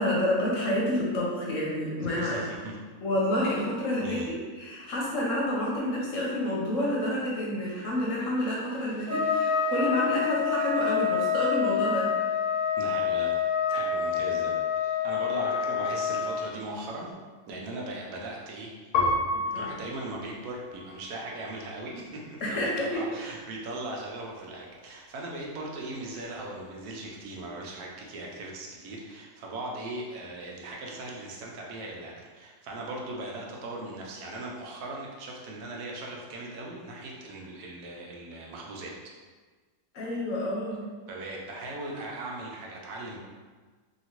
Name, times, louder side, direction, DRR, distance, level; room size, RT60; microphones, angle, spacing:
voice 1, 0.0-2.5 3.0-12.1 19.3-19.7 22.4-23.0 39.9-40.8, left 1 dB, 60° left, -4 dB, 1.0 m, -29 dB
voice 2, 2.2-2.7 4.0-4.3 12.8-13.4 13.7-17.1 17.5-18.9 19.5-38.9 41.1-43.2, right 2 dB, 80° right, -2 dB, 1.1 m, -39 dB
Trumpet, 9.1-16.4, left 6 dB, 25° right, 0.9 m, -27 dB
Piano, 18.9-21.7 22.3-23.0, left 2 dB, 85° left, 1.2 m, -32 dB
2.9 x 2.8 x 2.9 m, 1.4 s
omnidirectional pair, 1.6 m